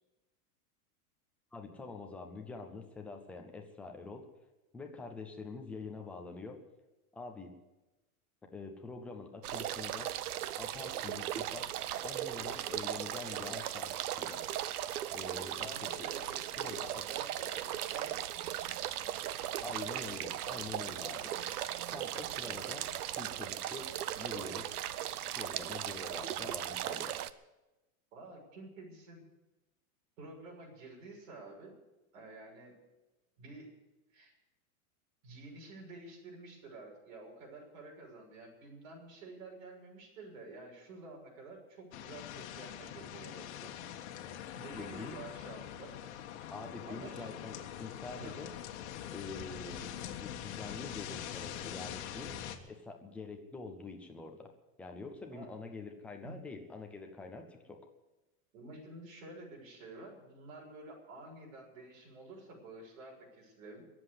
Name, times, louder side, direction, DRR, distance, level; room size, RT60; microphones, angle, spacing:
voice 1, 1.5-4.2 4.7-6.6 7.1-7.5 8.5-10.1 10.6-11.7 12.0-14.4 15.1-15.7 16.0-16.1 16.6-17.0 19.6-21.3 21.9-23.9 24.1-24.7 25.4-27.2 44.7-45.2 46.5-48.5 49.1-52.3 52.6-54.5 54.8-57.8, left 3 dB, 5° left, 2 dB, 0.5 m, -45 dB
sound 1, 9.4-27.3, right 12 dB, 85° right, 0.9 m, -38 dB
voice 2, 15.2-16.8 17.1-18.2 28.1-29.2 30.2-31.8 32.1-32.8 33.4-33.7 34.1-34.3 35.2-43.8 44.5-46.0 46.8-47.4 48.2-48.4 55.3-55.5 56.2-56.4 58.5-63.9, right 2 dB, 60° right, 0 dB, 6.5 m, -50 dB
sound 2, 41.9-52.6, left 10 dB, 50° left, 1.5 m, -44 dB
22.0 x 7.8 x 8.3 m, 1.0 s
supercardioid pair, 175°, 44 cm